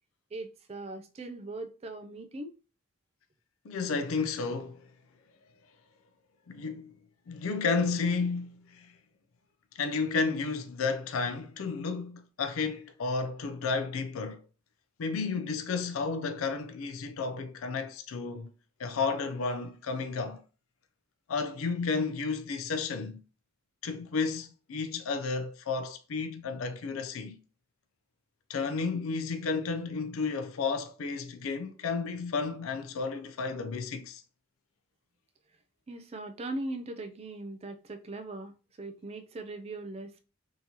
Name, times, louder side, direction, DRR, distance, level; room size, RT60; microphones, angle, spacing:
voice 1, 0.3-2.5 35.9-40.2, right 2 dB, 30° right, 0.3 m, -40 dB
voice 2, 3.6-4.9 6.5-6.9 7.3-8.9 9.8-14.4 15.0-18.5 18.8-20.4 21.3-23.2 23.8-27.4 28.5-34.2, left 4 dB, 80° left, 0.4 m, -32 dB
3.7 x 2.8 x 2.8 m
head